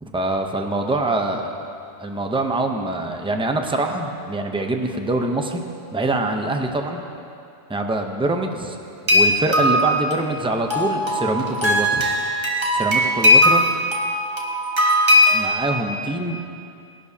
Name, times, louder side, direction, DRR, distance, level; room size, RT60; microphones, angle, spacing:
voice 1, 0.0-1.6 2.0-5.6 5.9-7.0 7.7-8.8 9.1-12.1 12.7-13.7 15.3-16.4, right 2 dB, 5° right, 3 dB, 0.6 m, -24 dB
sound 1, 9.1-15.6, left 1 dB, 25° right, 1.4 m, -19 dB
20.0 x 11.5 x 2.8 m, 2.6 s
omnidirectional pair, 1.2 m